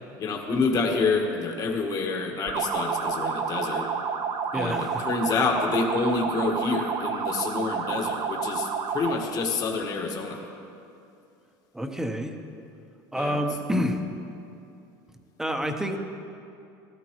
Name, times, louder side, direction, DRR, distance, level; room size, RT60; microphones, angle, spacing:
voice 1, 0.2-3.8 4.5-10.4 13.2-13.4, left 4 dB, 40° left, 1 dB, 1.6 m, -27 dB
sound 1, 2.5-9.3, right 6 dB, 55° right, 1.0 m, -30 dB
voice 2, 4.5-5.0 11.7-12.3 13.1-14.0 15.4-16.0, equal, 5° right, 5 dB, 0.9 m, -28 dB
16.5 x 13.5 x 3.1 m, 2.6 s
supercardioid pair, 130°, 10 cm